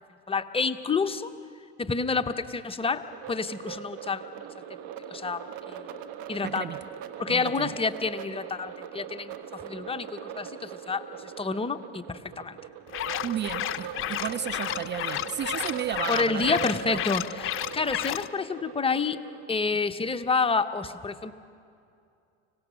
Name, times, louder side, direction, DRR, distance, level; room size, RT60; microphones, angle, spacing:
voice 1, 0.3-1.3 1.8-4.2 5.1-5.9 6.3-6.7 7.2-12.6 16.1-19.2 19.5-21.3, left 4 dB, 15° left, 8 dB, 0.9 m, -29 dB
sound 1, 2.8-19.5, right 9 dB, 60° right, 1.4 m, -41 dB
voice 2, 6.4-6.8 7.3-7.7 13.2-17.0, right 9 dB, 30° right, 13 dB, 0.5 m, -33 dB
sound 2, 12.9-18.3, left 13 dB, 40° left, 0.6 m, -32 dB
25.0 x 17.0 x 6.4 m, 2.5 s
hypercardioid pair, 75°, 34 cm